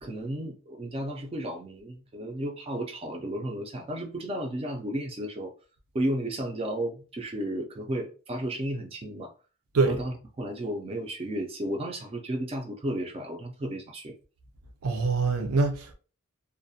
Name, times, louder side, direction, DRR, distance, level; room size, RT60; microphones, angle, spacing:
voice 1, 0.0-5.5 5.9-9.3 9.8-14.1, right 1 dB, 25° right, 0.3 m, -33 dB
voice 2, 14.8-15.9, right 3 dB, 75° right, 0.5 m, -24 dB
2.3 x 2.1 x 2.6 m
head